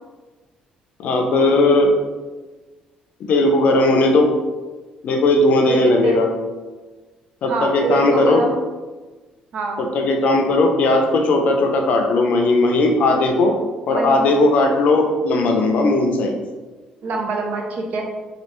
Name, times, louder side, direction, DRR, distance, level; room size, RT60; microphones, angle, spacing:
voice 1, 1.0-1.9 3.3-4.3 5.0-6.3 7.4-8.4 9.8-13.5 13.9-16.3, left 2 dB, 65° left, 3 dB, 0.5 m, -17 dB
voice 2, 5.7-6.3 7.5-8.6 9.5-9.8 13.9-14.4 17.0-18.1, right 2 dB, 65° right, 1 dB, 0.6 m, -25 dB
3.2 x 2.4 x 3.0 m, 1.3 s
cardioid pair, 105°, 3 cm